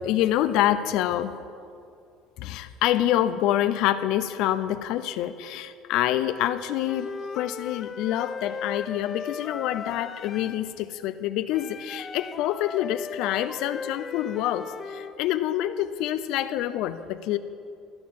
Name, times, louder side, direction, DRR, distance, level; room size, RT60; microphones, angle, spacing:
voice 1, 0.0-1.4 2.4-7.1 7.3-17.4, left 12 dB, 70° left, 11 dB, 0.6 m, -26 dB
Wind instrument woodwind instrument, 6.9-10.7 11.5-15.2, left 6 dB, 30° left, 0.5 m, -37 dB
15.5 x 10.5 x 7.6 m, 2.5 s
cardioid pair, 130°, 0 cm